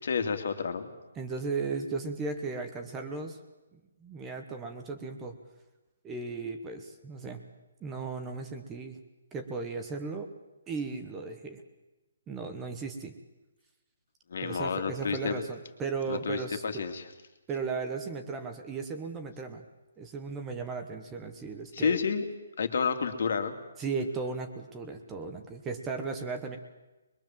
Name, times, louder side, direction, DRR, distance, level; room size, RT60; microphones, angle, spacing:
voice 1, 0.0-0.9 14.3-15.4 16.1-17.0 21.7-22.2 22.6-23.5, left 5 dB, 50° left, 7 dB, 2.5 m, -30 dB
voice 2, 1.2-3.4 3.7-5.4 6.0-7.4 7.8-9.0 9.3-10.3 10.7-11.6 12.3-13.1 14.4-16.8 17.5-19.6 20.0-22.0 23.8-26.6, right 4 dB, 10° right, 5 dB, 1.1 m, -36 dB
24.0 x 22.0 x 7.5 m, 1.1 s
hypercardioid pair, 175°, 0 cm